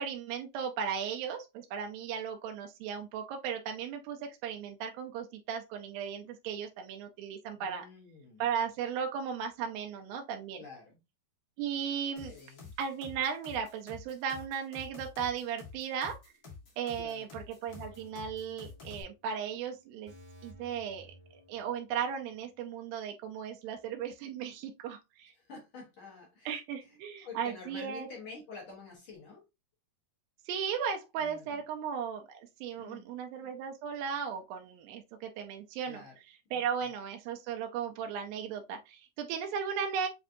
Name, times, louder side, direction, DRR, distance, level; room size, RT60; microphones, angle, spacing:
voice 1, 0.0-7.9 8.4-10.6 11.6-12.3 12.8-16.2 16.8-20.1 20.4-21.1 21.5-25.3 26.5-28.1 30.5-36.0 36.5-40.1, right 7 dB, 85° right, 2.4 m, -36 dB
voice 2, 7.6-8.4 10.5-11.0 11.9-12.7 16.9-17.3 25.3-27.0 27.2-29.4 31.2-31.6 32.8-33.1 35.8-36.2 36.5-36.9, left 4 dB, 60° left, 1.4 m, -49 dB
sound 1, 12.2-19.0, left 5 dB, 80° left, 0.8 m, -49 dB
sound 2, 17.7-19.2 19.5-19.6 20.1-22.0 22.3-22.4, equal, 15° right, 0.5 m, -55 dB
7.2 x 2.5 x 2.6 m
omnidirectional pair, 4.1 m